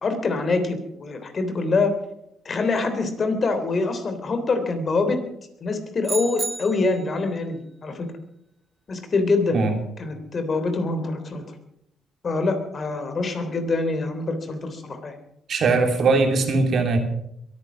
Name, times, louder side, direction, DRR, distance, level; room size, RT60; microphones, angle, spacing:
voice 1, 0.0-1.9 2.4-5.2 5.6-8.1 8.9-9.6 10.0-11.4 12.2-15.1, left 3 dB, 45° left, 8 dB, 3.4 m, -25 dB
sound 1, 6.0-7.2, right 3 dB, 35° right, 1.7 m, -31 dB
voice 2, 15.5-17.0, right 3 dB, 60° right, 5 dB, 3.1 m, -20 dB
22.5 x 9.6 x 6.2 m, 0.76 s
cardioid pair, 90°, 0 cm